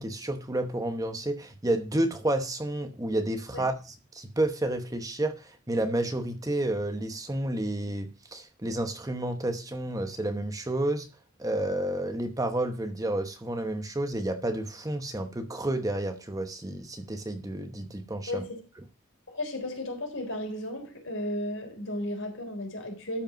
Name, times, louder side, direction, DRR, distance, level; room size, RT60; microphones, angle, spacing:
voice 1, 0.0-3.7 4.1-11.1 11.4-18.4, right 1 dB, 15° right, 0.9 m, -30 dB
voice 2, 18.3-18.6 19.3-23.2, left 1 dB, 75° left, 3.9 m, -34 dB
12.5 x 5.2 x 5.2 m
head